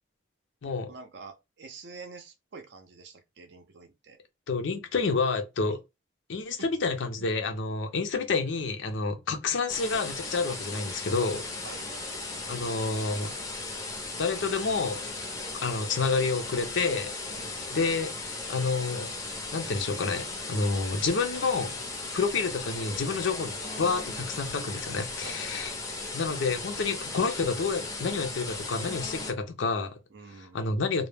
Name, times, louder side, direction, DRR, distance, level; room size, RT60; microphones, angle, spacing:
voice 1, 0.7-4.2 5.7-5.8 6.6-6.7 7.2-7.3 11.6-11.9 17.4-17.9 25.2-25.8 30.1-30.8, right 4 dB, 60° right, 0.5 m, -47 dB
voice 2, 4.5-5.8 6.3-11.4 12.5-13.3 14.2-15.0 15.6-17.4 17.7-18.1 18.5-19.1 19.5-21.8 22.1-25.7 26.1-30.0 30.5-31.1, left 4 dB, 70° left, 0.5 m, -29 dB
sound 1, 9.7-29.3, left 3 dB, 15° left, 0.5 m, -37 dB
2.1 x 2.0 x 3.2 m
head